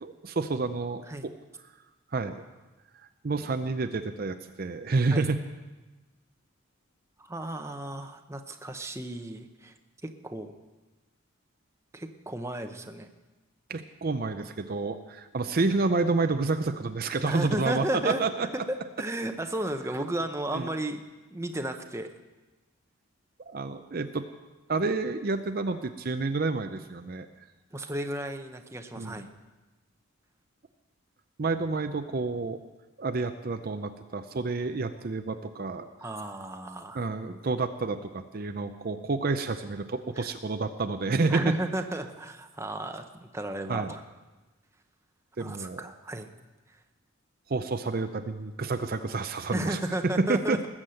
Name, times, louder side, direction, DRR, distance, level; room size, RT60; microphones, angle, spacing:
voice 1, 0.0-1.3 2.1-2.4 3.2-5.4 13.7-18.5 20.5-20.7 23.5-24.2 24.7-27.3 29.0-29.1 31.4-32.6 33.0-35.9 36.9-41.5 43.7-43.9 45.4-45.8 47.5-49.8 50.3-50.6, right 3 dB, 45° right, 8 dB, 0.5 m, -29 dB
voice 2, 7.2-9.7 10.0-10.5 11.9-13.1 17.2-18.2 18.7-21.0 21.3-22.1 27.7-29.3 36.0-37.1 40.1-40.3 41.3-44.0 45.4-46.3 46.7-46.8 49.5-50.7, right 1 dB, 15° right, 6 dB, 0.8 m, -34 dB
20.0 x 7.4 x 7.7 m, 1.2 s
head